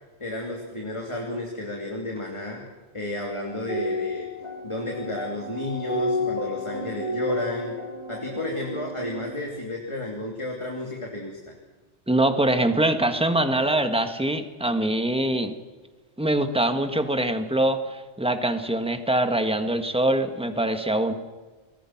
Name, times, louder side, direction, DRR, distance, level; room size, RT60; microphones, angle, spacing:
voice 1, 0.2-2.7 2.9-4.3 4.6-7.8 8.1-11.5, left 1 dB, 25° left, 0 dB, 3.1 m, -32 dB
sound 1, 3.5-9.4, left 1 dB, 75° right, 5.1 m, -31 dB
voice 2, 12.1-15.5 16.2-21.1, right 1 dB, 5° right, 7 dB, 1.6 m, -23 dB
28.5 x 22.5 x 6.0 m, 1.3 s
omnidirectional pair, 1.1 m